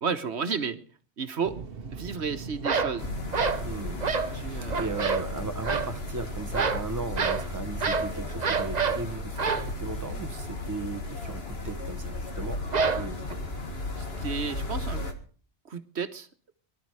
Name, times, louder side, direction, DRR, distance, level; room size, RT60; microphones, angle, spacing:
voice 1, 0.0-0.8 1.2-1.6 1.9-3.1 4.3-4.8 14.0-15.0 15.6-16.3, right 5 dB, 75° right, 9 dB, 1.5 m, -32 dB
sound 1, 1.4-11.2, right 4 dB, 60° right, 1.4 m, -44 dB
sound 2, 2.6-3.0 3.3-3.7 4.0-4.3 4.7-5.3 5.6-5.9 6.5-6.9 7.2-7.5 7.8-8.1 8.4-9.0 9.4-9.7 12.7-13.3, right 5 dB, 40° right, 1.0 m, -27 dB
sound 3, 3.0-15.1, left 2 dB, 65° left, 2.4 m, -35 dB
voice 2, 3.6-4.0 4.5-13.4, right 3 dB, 15° right, 6 dB, 1.3 m, -37 dB
22.0 x 12.0 x 4.8 m, 0.41 s
omnidirectional pair, 1.1 m